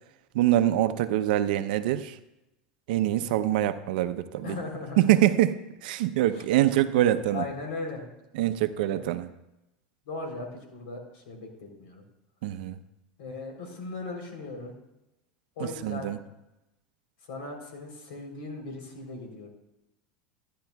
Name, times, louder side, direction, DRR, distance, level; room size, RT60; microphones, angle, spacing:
voice 1, 0.3-2.1 2.9-4.6 5.0-7.5 8.3-9.3 12.4-12.8 15.8-16.2, right 13 dB, 75° right, 11 dB, 0.7 m, -24 dB
voice 2, 4.4-5.1 6.3-6.4 7.0-8.1 8.9-9.1 10.1-12.0 13.2-14.8 15.6-16.2 17.3-19.5, left 3 dB, 80° left, 1 dB, 3.4 m, -38 dB
15.5 x 10.0 x 2.3 m, 0.92 s
supercardioid pair, 105°, 5 cm